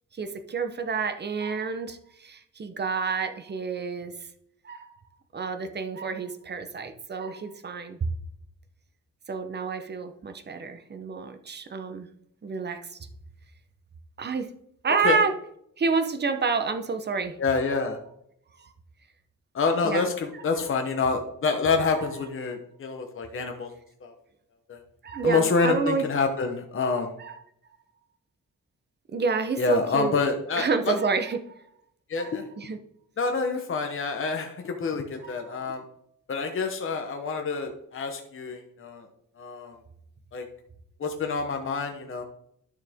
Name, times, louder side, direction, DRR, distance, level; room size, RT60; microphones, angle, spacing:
voice 1, 0.1-4.2 4.6-4.9 5.3-8.1 9.3-12.1 12.4-12.8 14.2-14.5 14.8-15.3 15.8-17.4 17.7-17.8 18.6-18.7 19.8-20.1 25.0-26.0 27.2-27.4 29.1-30.2 30.6-31.5 32.2-32.8 35.2-35.6, right 5 dB, 35° right, 8 dB, 0.8 m, -29 dB
voice 2, 17.4-18.0 19.5-23.7 24.0-24.1 24.7-24.8 25.2-27.1 29.6-30.9 32.1-32.4 33.2-35.8 36.3-39.1 39.4-39.7 40.3-40.4 41.0-42.2, left 4 dB, 40° left, 4 dB, 1.0 m, -27 dB
11.5 x 6.4 x 3.5 m, 0.72 s
wide cardioid pair, 170°, 31 cm